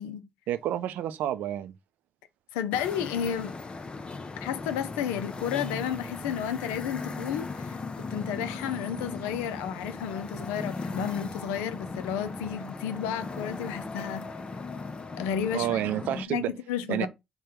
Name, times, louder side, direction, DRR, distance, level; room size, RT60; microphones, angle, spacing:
voice 1, 0.5-1.7 15.5-16.5 16.9-17.1, right 12 dB, 75° right, 0.4 m, -29 dB
voice 2, 2.5-3.5 4.4-14.3 15.2-15.8 16.2-17.1, left 9 dB, 85° left, 0.4 m, -32 dB
sound 1, 2.7-16.3, left 3 dB, 35° left, 0.6 m, -38 dB
3.4 x 2.2 x 4.3 m
hypercardioid pair, 45°, 3 cm